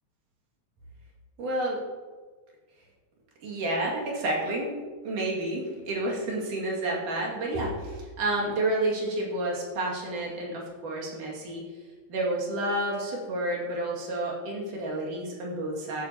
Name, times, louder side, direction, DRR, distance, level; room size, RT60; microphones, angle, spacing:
voice 1, 1.4-1.8 3.4-4.7 5.0-11.6 12.1-16.1, right 1 dB, 90° right, -3 dB, 3.7 m, -30 dB
15.0 x 9.2 x 2.9 m, 1.4 s
omnidirectional pair, 3.5 m